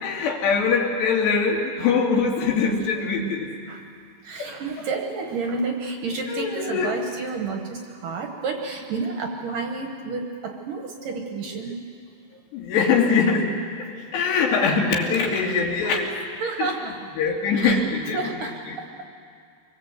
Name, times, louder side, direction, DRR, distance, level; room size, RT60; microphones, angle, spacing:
voice 1, 0.0-3.5 4.4-4.5 6.3-7.0 12.5-13.5 13.8-16.1 16.6-16.7 17.2-18.8, left 5 dB, 65° left, 0 dB, 4.4 m, -23 dB
voice 2, 4.2-11.8 15.1-15.4 15.8-15.9 16.4-17.0 17.6-17.8 18.1-19.1, right 4 dB, 65° right, 3 dB, 2.3 m, -30 dB
26.0 x 22.0 x 8.1 m, 2.3 s
omnidirectional pair, 5.4 m